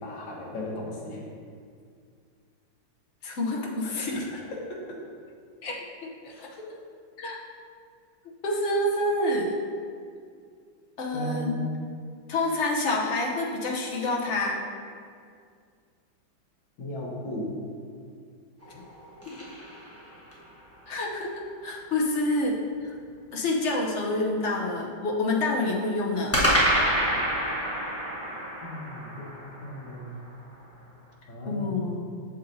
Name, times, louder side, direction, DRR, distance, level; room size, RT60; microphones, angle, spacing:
voice 1, 0.0-1.2 3.8-4.2 4.7-4.8 6.3-6.5 11.1-11.7 16.8-17.5 28.6-29.3 29.6-30.2 31.3-31.9, left 1 dB, 85° left, -3 dB, 2.1 m, -36 dB
voice 2, 3.2-4.2 5.6-6.3 7.2-7.4 8.4-9.6 11.0-11.6 12.3-14.6 18.7-18.8 19.3-19.4 20.9-22.6 22.8-22.9 23.3-26.3 31.5-32.1, left 2 dB, 50° left, -2 dB, 0.8 m, -28 dB
sound 1, 18.6-20.5 26.3-30.6, equal, 10° left, 0.9 m, -28 dB
7.8 x 7.1 x 2.7 m, 2.2 s
omnidirectional pair, 2.1 m